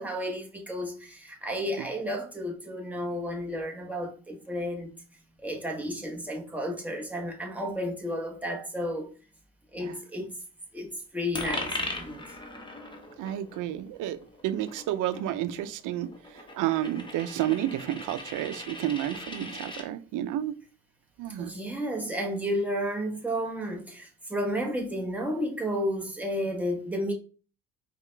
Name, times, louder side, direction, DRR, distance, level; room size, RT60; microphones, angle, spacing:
voice 1, 0.0-4.9 5.4-9.1 9.7-10.3 10.7-10.9 11.1-12.3 21.4-27.1, equal, 5° right, 1.1 m, -32 dB
Coin (dropping), 11.3-19.9, left 2 dB, 15° left, 1.0 m, -39 dB
voice 2, 13.2-14.2 14.4-16.1 16.5-20.5 21.2-21.5, right 12 dB, 85° right, 0.5 m, -30 dB
4.8 x 2.4 x 3.3 m
cardioid pair, 90°, 30 cm